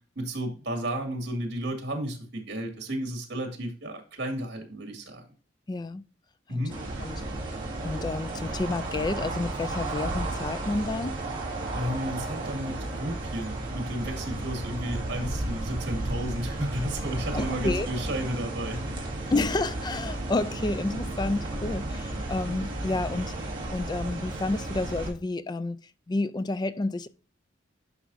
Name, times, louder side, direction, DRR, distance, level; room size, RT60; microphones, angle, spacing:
voice 1, 0.2-5.2 6.5-6.8 11.7-18.9, right 1 dB, 65° right, 2.1 m, -33 dB
voice 2, 5.7-6.0 6.5-6.6 7.0-7.2 7.8-11.2 17.3-17.9 19.3-23.3 23.7-25.8 26.1-27.1, left 2 dB, 20° left, 0.4 m, -30 dB
sound 1, 6.7-25.1, right 2 dB, 25° right, 2.3 m, -33 dB
11.0 x 4.8 x 2.6 m
head